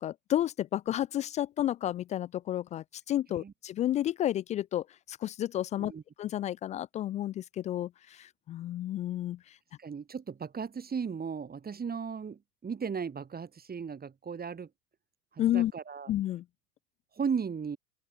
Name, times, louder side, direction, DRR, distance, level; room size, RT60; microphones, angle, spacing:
voice 1, 0.0-5.9 6.2-9.4 15.4-15.7 16.1-16.4, left 12 dB, 15° left, 0.4 m, -31 dB
voice 2, 9.8-14.7 15.3-16.1 17.2-17.8, right 6 dB, 20° right, 7.2 m, -36 dB
open air
figure-of-eight pair, 85°, 48 cm